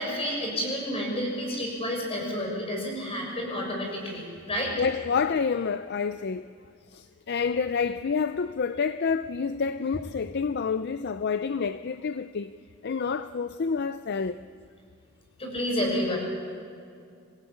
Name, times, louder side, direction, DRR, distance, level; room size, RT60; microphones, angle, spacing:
voice 1, 0.0-4.7 15.4-16.2, equal, 30° left, 6.4 m, -30 dB
voice 2, 4.8-6.5 6.9-12.5 12.8-14.4, left 5 dB, 55° left, 0.5 m, -28 dB
25.5 x 17.5 x 8.7 m
head